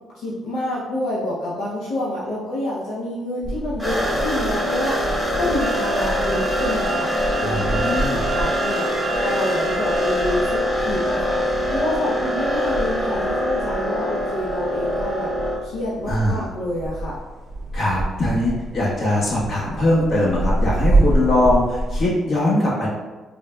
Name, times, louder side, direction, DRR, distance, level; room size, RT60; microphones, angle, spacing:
voice 1, 0.1-8.8 9.2-15.3 15.6-17.2, left 1 dB, 85° left, -7 dB, 0.6 m, -28 dB
sound 1, 3.4-22.1, right 2 dB, 35° right, 0.6 m, -28 dB
sound 2, 3.8-15.6, equal, 5° left, 1.2 m, -24 dB
sound 3, 5.6-10.6, right 3 dB, 90° right, 0.5 m, -31 dB
voice 2, 7.4-8.2 16.1-16.4 17.7-22.9, left 1 dB, 55° left, -6 dB, 1.1 m, -21 dB
3.7 x 2.2 x 2.2 m, 1.2 s
cardioid pair, 90°, 0 cm